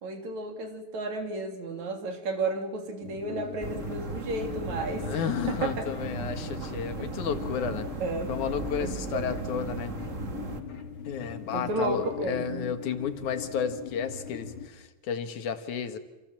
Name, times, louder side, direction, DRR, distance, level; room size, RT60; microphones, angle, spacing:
voice 1, 0.0-5.2 5.5-5.8 7.0-7.1 8.0-8.3 8.8-9.6 11.5-12.7, right 2 dB, 70° right, 5 dB, 4.4 m, -33 dB
sound 1, 3.0-14.7, left 8 dB, 45° left, 3.3 m, -41 dB
sound 2, 3.6-10.6, right 4 dB, 30° right, 1.7 m, -36 dB
voice 2, 5.0-7.9 8.3-9.9 11.1-16.0, left 7 dB, 90° left, 8 dB, 3.2 m, -32 dB
28.5 x 28.0 x 7.6 m, 1.1 s
omnidirectional pair, 3.3 m